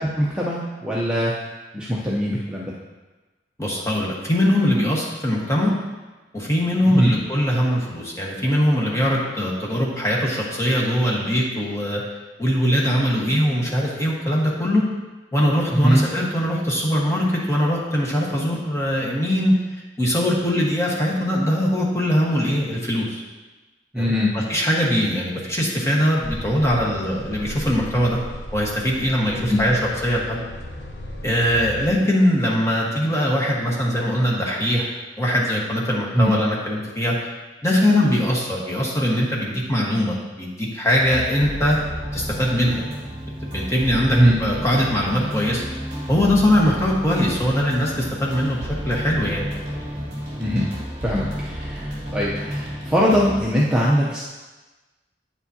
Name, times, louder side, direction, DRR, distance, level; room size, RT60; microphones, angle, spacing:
voice 1, 0.0-1.3 1.7-2.7 6.9-7.1 15.7-16.0 23.9-24.3 29.4-29.6 36.1-36.3 44.1-44.4 50.4-50.7 51.0-54.2, equal, 5° right, -6 dB, 0.7 m, -21 dB
voice 2, 3.6-5.7 6.3-12.0 12.4-14.8 15.3-19.5 20.0-23.2 24.0-28.2 28.5-30.4 31.2-34.9 35.2-37.1 37.6-41.8 42.1-42.9 43.5-45.6 46.1-48.6 48.8-49.5, equal, 15° left, -3 dB, 1.4 m, -21 dB
sound 1, 26.2-31.9, left 1 dB, 70° left, 0.8 m, -36 dB
sound 2, 40.9-53.4, equal, 35° right, 2.4 m, -31 dB
9.1 x 7.0 x 2.8 m, 1.2 s
head